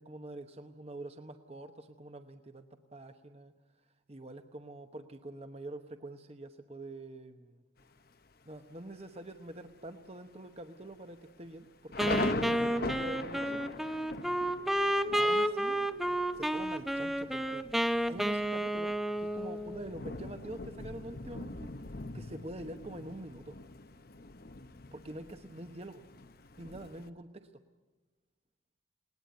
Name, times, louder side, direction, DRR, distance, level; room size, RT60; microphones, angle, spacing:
voice 1, 0.0-3.5 4.1-7.6 8.4-13.7 15.1-15.8 16.3-17.6 18.1-18.9 19.2-21.7 22.1-23.5 24.9-26.0 26.6-27.3, right 1 dB, 30° right, 7 dB, 1.0 m, -45 dB
Thunder, 7.8-8.3 8.9-9.0 9.3-9.7 10.0-10.1 10.8-27.1, left 3 dB, 50° left, 0.9 m, -42 dB
Wind instrument woodwind instrument, 12.0-19.9, right 1 dB, ahead, 0.9 m, -31 dB
20.0 x 19.0 x 9.3 m, 1.2 s
head